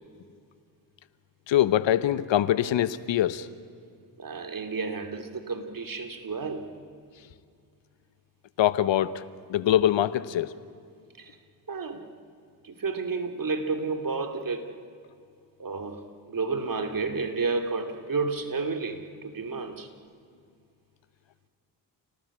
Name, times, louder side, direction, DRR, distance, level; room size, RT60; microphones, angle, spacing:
voice 1, 1.5-3.5 8.6-9.2 9.5-10.6, left 12 dB, 60° left, 16 dB, 1.1 m, -23 dB
voice 2, 4.2-6.8 11.2-11.4 11.7-12.1 12.6-14.7 15.6-19.9, right 4 dB, 40° right, 7 dB, 2.8 m, -31 dB
29.5 x 18.5 x 8.5 m, 2.3 s
hypercardioid pair, 45°, 49 cm